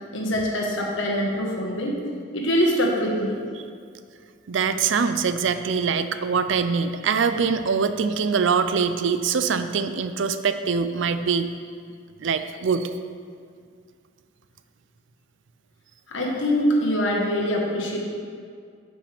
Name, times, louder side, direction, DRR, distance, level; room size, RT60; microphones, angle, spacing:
voice 1, 0.1-2.0 2.3-3.5 16.1-18.0, equal, 80° left, -1 dB, 1.4 m, -24 dB
voice 2, 4.5-11.5 12.2-12.9, right 5 dB, 75° right, 10 dB, 0.4 m, -23 dB
12.0 x 5.2 x 3.5 m, 2.2 s
head